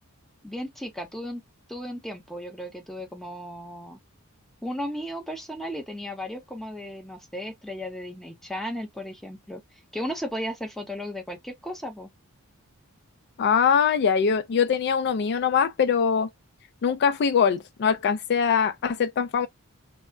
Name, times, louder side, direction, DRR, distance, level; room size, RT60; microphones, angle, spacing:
voice 1, 0.4-1.4 1.7-4.0 4.6-9.6 9.9-12.1, equal, ahead, 0.7 m, -35 dB
voice 2, 13.4-16.3 16.8-19.5, left 6 dB, 50° left, 0.3 m, -22 dB
3.4 x 2.1 x 2.4 m
head